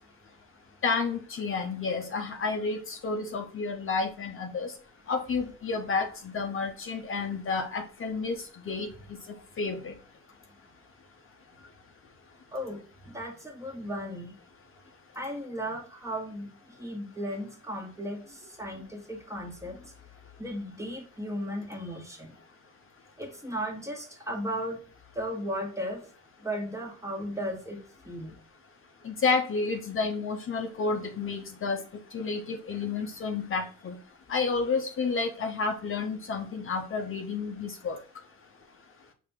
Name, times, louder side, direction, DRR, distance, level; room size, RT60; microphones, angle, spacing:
voice 1, 0.8-4.7 5.1-8.4 8.7-8.9 9.6-9.9 29.0-31.8 32.1-34.0 34.3-38.0, left 4 dB, 45° left, 4 dB, 0.8 m, -30 dB
voice 2, 13.1-14.4 15.1-16.5 16.8-19.9 20.4-22.3 23.2-24.8 25.1-26.0 26.4-27.8 28.0-28.4, equal, 10° right, 2 dB, 1.2 m, -35 dB
4.9 x 3.0 x 3.5 m, 0.40 s
cardioid pair, 90°, 30 cm